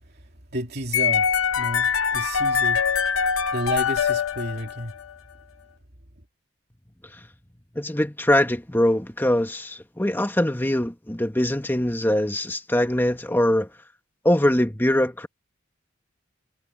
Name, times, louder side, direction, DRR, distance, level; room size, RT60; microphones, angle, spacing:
voice 1, 0.5-2.8 3.5-4.9, right 1 dB, 50° right, 2.7 m, -31 dB
sound 1, 0.9-5.0, left 7 dB, 85° left, 0.8 m, -23 dB
voice 2, 7.7-13.7 14.2-15.3, left 1 dB, 10° left, 1.5 m, -22 dB
head